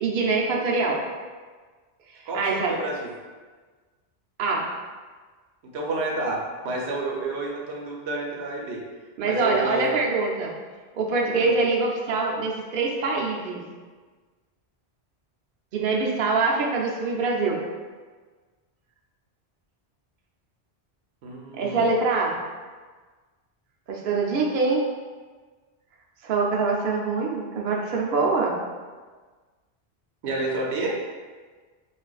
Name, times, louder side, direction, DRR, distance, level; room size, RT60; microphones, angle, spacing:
voice 1, 0.0-1.0 2.3-2.7 4.4-4.7 9.2-10.5 10.9-13.6 15.7-17.6 21.5-22.4 23.9-24.8 26.2-28.5, right 3 dB, 60° right, -2 dB, 0.7 m, -24 dB
voice 2, 2.3-3.1 5.7-8.8 9.2-10.0 11.3-11.5 21.2-21.9 30.2-31.0, right 2 dB, 85° right, -1 dB, 0.9 m, -30 dB
4.8 x 2.5 x 2.3 m, 1.4 s
omnidirectional pair, 1.1 m